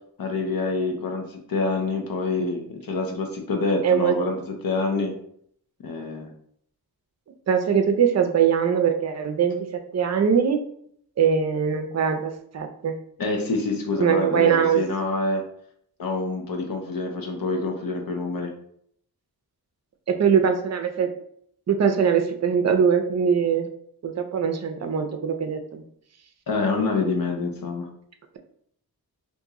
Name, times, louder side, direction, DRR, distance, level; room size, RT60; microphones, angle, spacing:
voice 1, 0.2-4.4 4.6-5.1 5.8-6.3 13.2-15.4 16.0-18.5 26.5-27.8, left 3 dB, 65° left, 2 dB, 0.7 m, -26 dB
voice 2, 3.8-4.2 7.5-10.6 11.2-13.0 14.0-14.8 20.1-21.1 21.7-23.7 24.0-25.8, right 7 dB, 45° right, 6 dB, 0.5 m, -22 dB
2.9 x 2.6 x 3.6 m, 0.67 s
wide cardioid pair, 140°, 38 cm